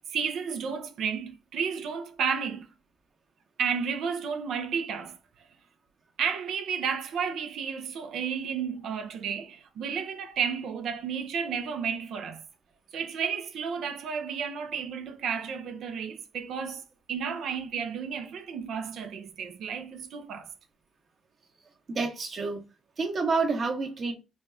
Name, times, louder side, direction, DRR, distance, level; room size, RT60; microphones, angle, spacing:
voice 1, 0.0-2.7 3.6-5.2 6.2-12.4 12.9-16.8 17.1-20.5, right 6 dB, 75° right, 0.6 m, -32 dB
voice 2, 21.9-22.6 23.0-24.1, right 4 dB, 45° right, 1.1 m, -28 dB
3.9 x 2.3 x 3.2 m
cardioid pair, 90°, 0 cm